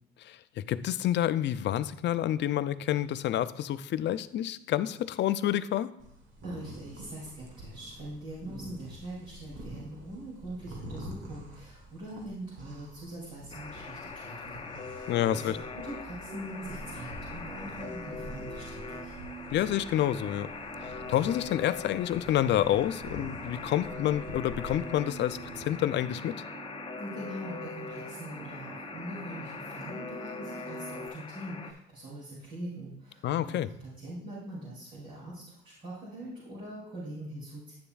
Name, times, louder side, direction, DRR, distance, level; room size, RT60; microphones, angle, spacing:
voice 1, 0.2-5.9 15.1-15.6 19.5-20.5 20.8-26.4 33.2-33.7, left 12 dB, 65° left, 14 dB, 0.4 m, -28 dB
sound 1, 6.0-25.7, equal, 80° right, 1.5 m, -47 dB
voice 2, 6.4-19.2 27.0-37.7, right 1 dB, 45° right, -7 dB, 2.7 m, -43 dB
Alarm, 13.5-31.7, left 4 dB, 30° left, 0.7 m, -42 dB
sound 2, 16.2-31.1, right 6 dB, 25° right, 0.4 m, -47 dB
9.9 x 6.8 x 2.3 m, 0.75 s
cardioid pair, 90°, 20 cm